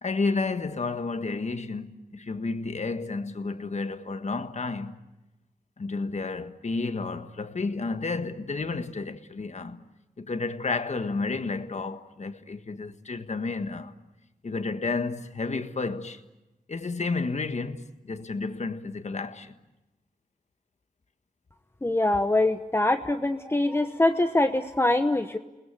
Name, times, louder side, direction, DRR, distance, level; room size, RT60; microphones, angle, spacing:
voice 1, 0.0-5.0 5.8-9.9 10.2-13.9 14.4-16.2 16.7-19.5, left 3 dB, 50° left, 1.6 m, -31 dB
voice 2, 21.8-25.4, left 2 dB, 15° left, 1.0 m, -24 dB
29.5 x 20.0 x 9.8 m
wide cardioid pair, 90°, 15 cm